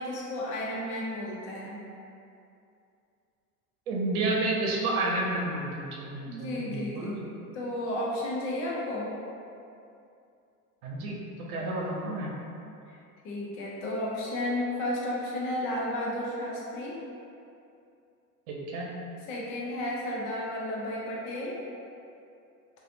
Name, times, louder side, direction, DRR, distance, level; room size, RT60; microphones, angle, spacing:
voice 1, 0.0-1.8 6.3-7.2 7.5-9.1 12.9-13.0 13.2-17.0 19.3-21.6, left 1 dB, 55° left, -4 dB, 0.9 m, -33 dB
voice 2, 3.9-7.2 10.8-12.3 18.5-18.9, right 2 dB, 65° right, -2 dB, 0.8 m, -31 dB
4.1 x 2.4 x 2.7 m, 2.6 s
hypercardioid pair, 75°, 46 cm